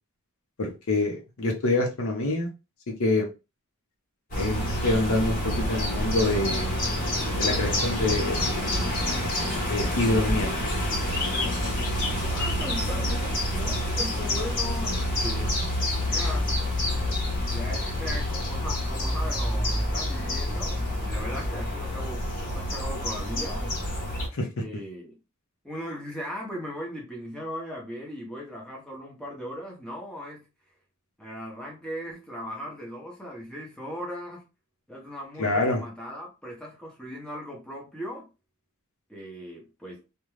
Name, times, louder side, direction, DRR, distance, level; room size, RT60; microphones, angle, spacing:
voice 1, 0.6-2.5 2.9-3.3 4.3-6.8 7.4-8.4 9.7-10.6 24.3-24.5 35.4-35.8, left 2 dB, 65° left, 0.7 m, -26 dB
sound 1, 4.3-24.3, left 1 dB, 40° left, 1.0 m, -27 dB
voice 2, 12.2-15.6 16.0-16.5 17.5-23.7 24.6-25.2 25.6-30.5 31.2-34.4 34.9-38.3 39.1-40.0, equal, 5° left, 0.8 m, -38 dB
2.5 x 2.2 x 3.0 m
head